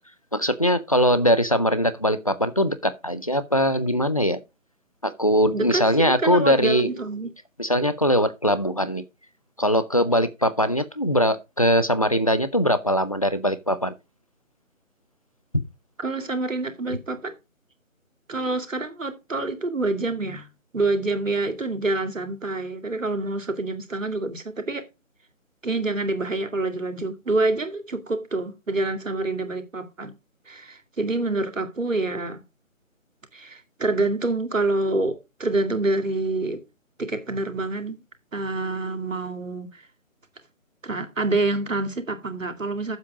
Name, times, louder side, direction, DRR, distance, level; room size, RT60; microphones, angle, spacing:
voice 1, 0.3-4.4 5.0-6.9 7.6-9.0 9.6-13.9, equal, 25° left, 0.6 m, -21 dB
voice 2, 5.5-7.3 16.0-17.3 18.3-20.5 20.7-24.9 25.6-30.1 30.5-32.4 33.3-36.6 37.0-38.0 38.3-39.8 40.8-43.0, right 2 dB, 65° right, 2.4 m, -27 dB
9.7 x 7.4 x 4.9 m
figure-of-eight pair, 155°, 41 cm